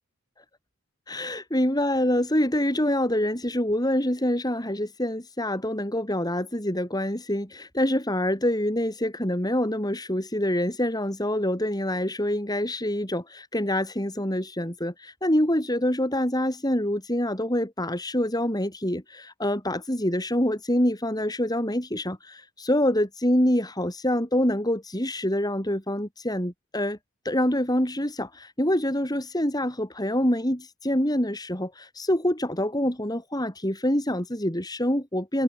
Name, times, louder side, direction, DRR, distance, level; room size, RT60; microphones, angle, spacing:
voice 1, 1.1-27.0 27.2-35.4, left 1 dB, 20° left, 7.3 m, -26 dB
head